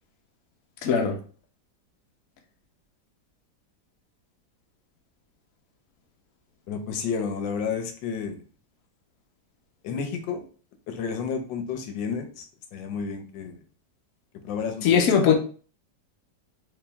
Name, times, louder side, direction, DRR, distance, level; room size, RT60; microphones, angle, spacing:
voice 1, 0.8-1.2 14.8-15.3, left 7 dB, 60° left, 3 dB, 1.0 m, -20 dB
voice 2, 6.7-8.4 9.8-10.4 10.9-12.5 12.7-13.6 14.4-15.3, left 6 dB, 85° left, 6 dB, 1.4 m, -31 dB
3.4 x 3.0 x 3.4 m, 0.40 s
omnidirectional pair, 2.0 m